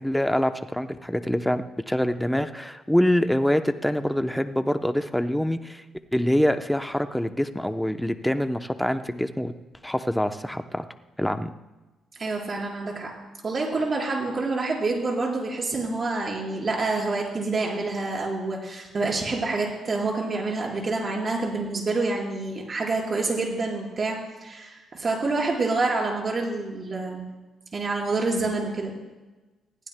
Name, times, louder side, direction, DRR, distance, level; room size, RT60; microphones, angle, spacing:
voice 1, 0.0-5.8 6.1-9.5 9.8-10.8 11.2-11.5, equal, 5° left, 8 dB, 0.7 m, -25 dB
voice 2, 12.2-13.1 13.4-27.2 27.7-28.9, right 3 dB, 40° right, -1 dB, 4.5 m, -27 dB
20.5 x 15.5 x 2.2 m, 1.2 s
cardioid pair, 90°, 0 cm